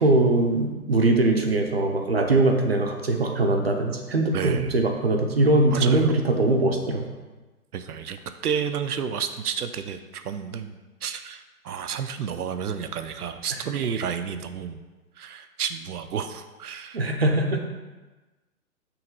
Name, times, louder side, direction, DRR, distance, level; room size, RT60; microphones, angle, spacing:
voice 1, 0.0-7.0 16.9-17.6, right 2 dB, 45° right, 3 dB, 0.6 m, -21 dB
voice 2, 4.3-4.8 5.7-6.1 7.7-14.8 15.2-17.0, right 7 dB, 90° right, 9 dB, 0.7 m, -31 dB
5.7 x 3.2 x 5.4 m, 1.2 s
hypercardioid pair, 180°, 44 cm